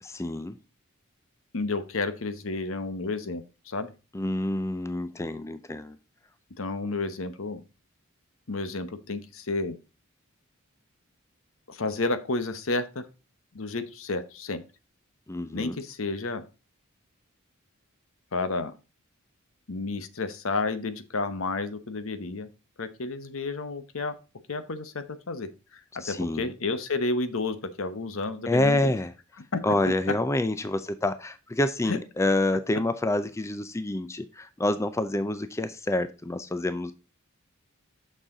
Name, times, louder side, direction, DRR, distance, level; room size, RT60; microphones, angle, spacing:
voice 1, 0.0-0.6 4.1-6.0 15.3-15.8 26.0-26.5 28.5-29.1 29.6-36.9, left 1 dB, 15° left, 11 dB, 0.4 m, -27 dB
voice 2, 1.5-3.9 6.6-7.6 8.5-9.8 11.7-13.1 13.5-14.6 15.5-16.4 18.3-18.7 19.7-22.5 22.8-24.2 24.5-25.8 26.1-28.9 29.5-29.6 31.9-32.0, left 3 dB, 65° left, 12 dB, 0.9 m, -31 dB
6.5 x 6.2 x 3.8 m, 0.30 s
head